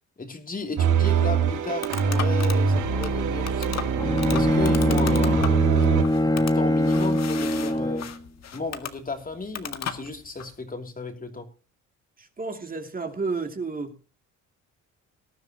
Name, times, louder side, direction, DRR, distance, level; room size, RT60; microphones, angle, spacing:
voice 1, 0.2-3.9 4.3-5.7 6.1-8.1 8.5-11.5, left 3 dB, 30° left, 3.0 m, -34 dB
sound 1, 0.8-6.0, right 6 dB, 80° right, 2.3 m, -23 dB
sound 2, 1.0-10.5, left 8 dB, 60° left, 2.0 m, -37 dB
Bowed string instrument, 4.0-8.2, left 1 dB, 15° left, 1.6 m, -23 dB
voice 2, 12.2-14.0, right 4 dB, 30° right, 2.8 m, -31 dB
19.5 x 12.0 x 3.0 m
cardioid pair, 90°, 30 cm